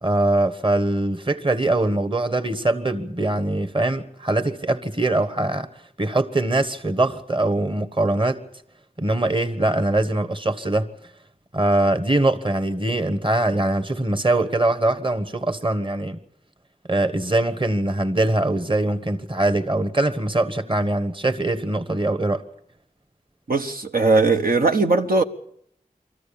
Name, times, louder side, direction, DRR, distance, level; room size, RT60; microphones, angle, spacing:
voice 1, 0.0-5.7 6.0-8.4 9.0-10.9 11.5-16.2 16.9-22.4, right 2 dB, 35° right, 1.4 m, -22 dB
voice 2, 23.5-25.2, right 3 dB, 85° right, 1.2 m, -19 dB
23.5 x 14.5 x 8.6 m
wide cardioid pair, 50°, 15 cm